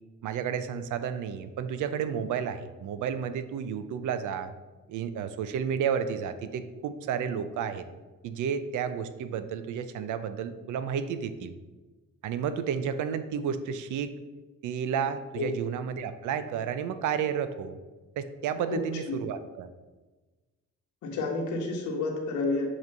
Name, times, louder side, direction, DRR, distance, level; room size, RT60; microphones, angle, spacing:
voice 1, 0.2-4.5 4.9-7.9 8.2-11.5 12.2-14.1 14.6-17.8 18.2-19.7, right 7 dB, 80° right, 11 dB, 0.6 m, -31 dB
voice 2, 21.0-22.7, left 3 dB, 75° left, 1 dB, 1.5 m, -29 dB
7.3 x 3.1 x 5.4 m, 1.2 s
cardioid pair, 90°, 30 cm